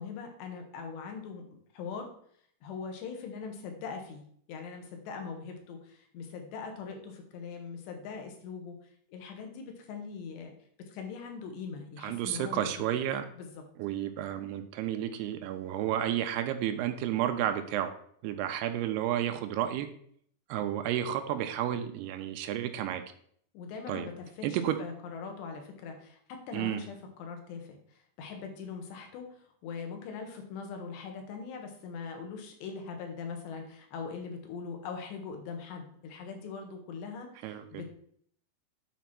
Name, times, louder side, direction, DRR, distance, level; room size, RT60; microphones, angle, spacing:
voice 1, 0.0-1.4 1.7-2.1 2.6-4.2 4.5-10.5 10.9-12.9 13.4-13.6 23.5-26.2 26.5-37.9, left 5 dB, 85° left, 4 dB, 3.6 m, -41 dB
voice 2, 12.0-13.3 13.8-17.9 18.2-19.9 20.5-23.0 23.9-24.1 24.4-24.8 26.5-26.8 37.4-37.6, right 11 dB, 80° right, 8 dB, 2.5 m, -31 dB
9.3 x 4.1 x 6.0 m, 0.63 s
omnidirectional pair, 4.9 m